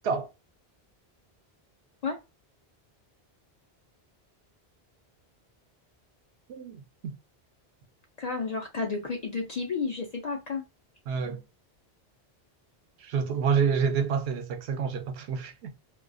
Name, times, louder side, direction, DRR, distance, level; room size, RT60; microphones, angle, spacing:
voice 1, 6.5-7.2 11.1-11.4 13.0-15.7, right 6 dB, 80° right, 0.8 m, -28 dB
voice 2, 8.2-10.6, left 4 dB, 55° left, 0.5 m, -31 dB
2.3 x 2.3 x 2.4 m
omnidirectional pair, 1.1 m